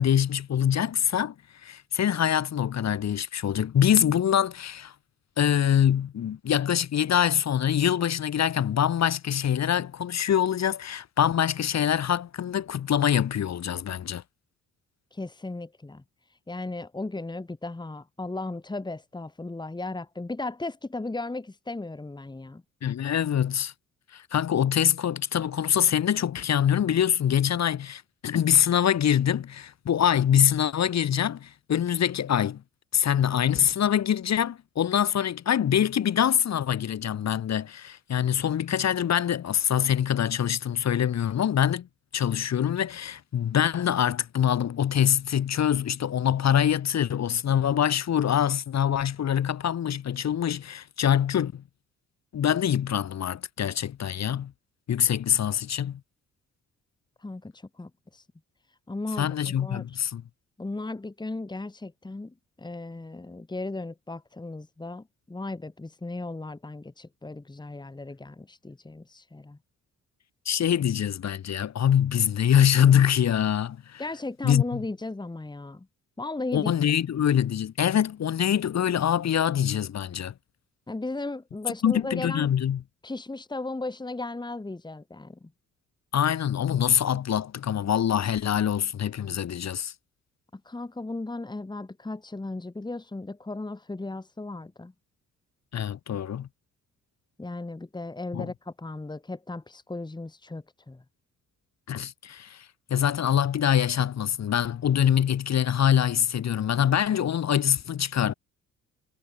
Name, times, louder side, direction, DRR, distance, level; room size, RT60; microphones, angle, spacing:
voice 1, 0.0-1.3 1.6-4.9 5.4-14.2 22.8-23.7 24.1-32.6 32.9-41.9 42.1-51.6 52.3-54.5 54.9-56.0 59.2-60.2 70.5-74.0 74.4-74.8 76.5-80.3 81.8-82.8 86.1-89.9 95.7-96.5 98.3-98.5 101.9-108.3, left 9 dB, 60° left, 5.5 m, -24 dB
voice 2, 15.1-16.0 16.5-22.6 57.2-58.2 58.9-59.8 60.6-69.6 74.0-75.9 76.2-76.7 80.9-82.5 83.0-85.5 90.5-94.9 97.4-101.0, left 2 dB, 15° left, 2.5 m, -36 dB
cardioid pair, 90°, 30 cm